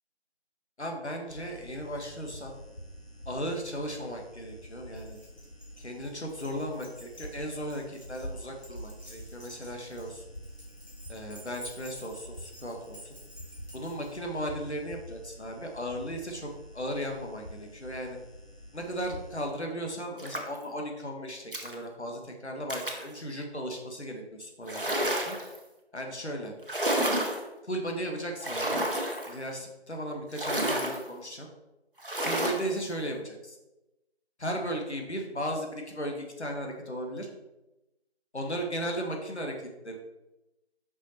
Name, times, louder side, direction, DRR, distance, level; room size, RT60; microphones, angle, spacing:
voice 1, 0.8-2.5 3.2-5.2 5.8-10.2 11.1-13.0 13.7-16.5 16.7-18.2 18.7-25.4 25.9-26.5 27.6-28.8 29.3-31.5 32.2-33.6 34.4-37.3 38.3-39.9, equal, 75° left, 2 dB, 1.6 m, -36 dB
sound 1, 1.3-19.4, equal, 60° left, 1.3 m, -47 dB
Keys jangling, 4.9-14.2, equal, 40° left, 2.0 m, -51 dB
sound 2, 20.2-20.6 21.5-21.7 22.7-23.1 24.6-25.6 26.6-27.4 28.4-29.3 30.3-31.0 32.0-32.7, right 1 dB, 50° right, 1.1 m, -30 dB
5.7 x 5.7 x 4.2 m, 0.98 s
figure-of-eight pair, 180°, 34 cm